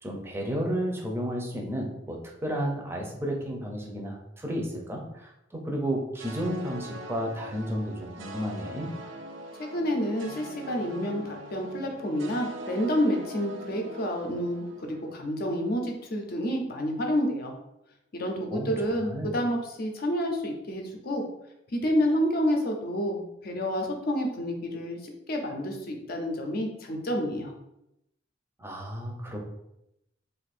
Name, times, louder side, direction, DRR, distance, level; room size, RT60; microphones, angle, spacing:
voice 1, 0.0-8.9 18.5-19.3 28.6-29.4, equal, 15° right, 0 dB, 0.6 m, -32 dB
sound 1, 6.2-15.5, right 2 dB, 90° right, 0.4 m, -42 dB
voice 2, 9.6-17.5 18.1-21.2 21.7-27.5, equal, 55° left, 3 dB, 0.6 m, -29 dB
2.6 x 2.5 x 4.2 m, 0.85 s
head